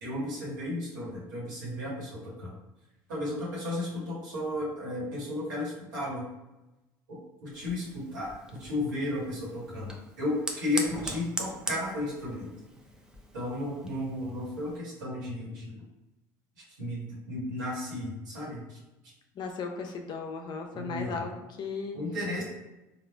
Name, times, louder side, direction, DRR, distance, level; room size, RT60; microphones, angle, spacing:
voice 1, 0.0-2.5 3.1-6.3 7.4-9.9 10.2-12.5 13.3-15.8 16.8-18.8 20.7-21.2 21.9-22.4, left 1 dB, 90° right, -6 dB, 1.4 m, -34 dB
Fire, 7.5-14.8, right 1 dB, 5° right, 0.5 m, -41 dB
voice 2, 19.4-22.0, left 4 dB, 50° left, 4 dB, 0.6 m, -36 dB
3.9 x 2.5 x 2.3 m, 1.0 s
hypercardioid pair, 75°, 10 cm